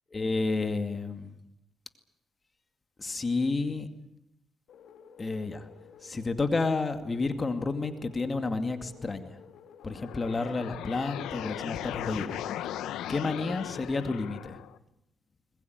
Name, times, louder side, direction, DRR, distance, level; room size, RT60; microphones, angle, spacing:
voice 1, 0.1-1.3 3.0-3.9 5.2-5.7 6.0-9.4 9.8-12.4 13.1-14.6, left 3 dB, 30° left, 8 dB, 2.3 m, -30 dB
sound 1, 4.7-13.5, left 7 dB, 70° left, 2.0 m, -53 dB
sound 2, 9.8-14.8, left 11 dB, 85° left, 1.1 m, -38 dB
21.0 x 21.0 x 9.5 m, 0.83 s
cardioid pair, 90°, 0 cm